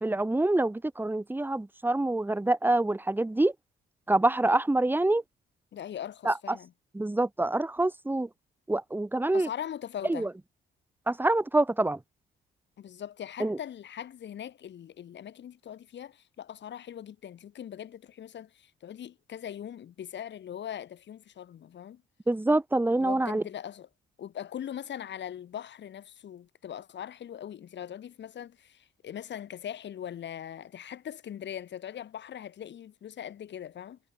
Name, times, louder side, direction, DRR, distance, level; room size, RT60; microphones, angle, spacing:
voice 1, 0.0-3.5 4.1-5.2 6.2-6.6 6.9-8.3 8.7-9.5 10.1-10.3 11.1-12.0 13.4-13.6 22.3-23.4, right 2 dB, 10° right, 1.7 m, -26 dB
voice 2, 5.7-6.7 9.3-10.3 12.8-22.0 23.0-23.9 24.2-34.0, left 10 dB, 65° left, 4.5 m, -41 dB
cardioid pair, 90°, 20 cm